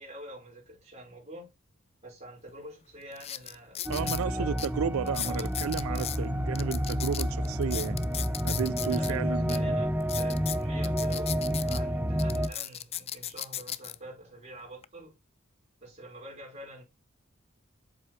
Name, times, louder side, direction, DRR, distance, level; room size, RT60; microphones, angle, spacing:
voice 1, 0.0-1.5 2.0-4.6 5.0-5.5 5.9-6.1 8.9-15.2 15.8-16.8, equal, 30° right, 5.6 m, -46 dB
sound 1, 2.5-2.6 3.1-4.2 4.6-4.7 5.1-6.2 6.5-9.1 9.5-9.6 10.0-11.8 12.2-13.9 14.6-14.8, left 11 dB, 30° left, 0.4 m, -36 dB
sound 2, 3.9-12.5, equal, 10° right, 0.7 m, -30 dB
voice 2, 3.9-8.1 8.4-9.8, right 6 dB, 75° right, 0.4 m, -33 dB
7.8 x 7.7 x 3.2 m
head